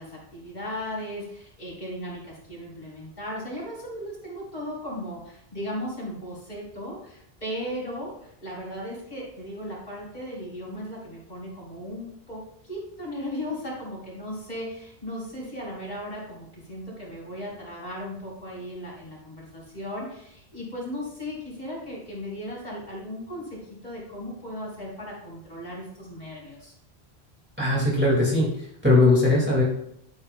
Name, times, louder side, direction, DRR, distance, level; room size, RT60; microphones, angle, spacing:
voice 1, 0.0-26.7, equal, 45° left, -5 dB, 4.1 m, -36 dB
voice 2, 27.6-29.6, left 2 dB, 10° right, -5 dB, 2.0 m, -20 dB
11.5 x 8.8 x 2.2 m, 0.75 s
omnidirectional pair, 1.1 m